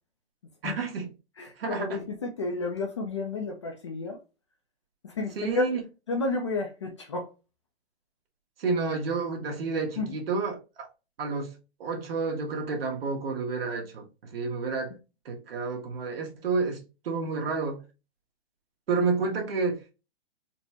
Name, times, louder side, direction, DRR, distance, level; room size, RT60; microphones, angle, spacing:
voice 1, 0.6-1.1 1.6-2.0 5.4-5.8 8.6-10.9 11.2-11.5 11.8-14.0 14.3-14.9 15.2-17.8 18.9-19.8, right 4 dB, 60° right, 1.3 m, -30 dB
voice 2, 1.4-4.2 5.0-5.8 6.1-7.3 10.0-10.2, left 3 dB, 30° left, 0.4 m, -31 dB
4.2 x 2.1 x 2.8 m
hypercardioid pair, 155°, 33 cm